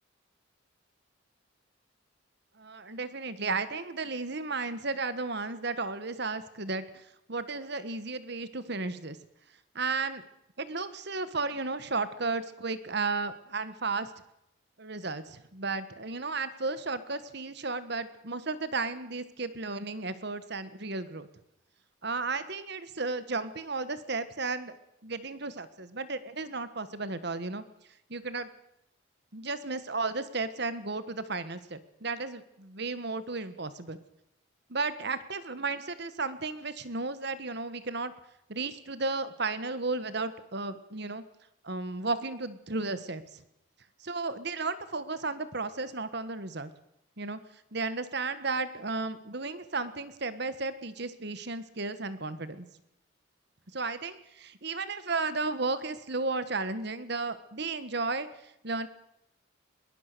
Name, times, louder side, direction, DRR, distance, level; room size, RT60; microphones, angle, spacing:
voice 1, 2.6-9.2 9.7-10.2 10.6-14.1 14.8-21.3 22.0-24.8 25.0-27.6 28.1-28.5 29.3-34.0 34.7-38.1 38.5-41.2 41.6-43.4 44.0-46.7 47.2-47.4 47.7-52.7 53.7-58.9, right 3 dB, 55° right, 13 dB, 1.5 m, -34 dB
21.5 x 18.5 x 6.8 m, 0.81 s
head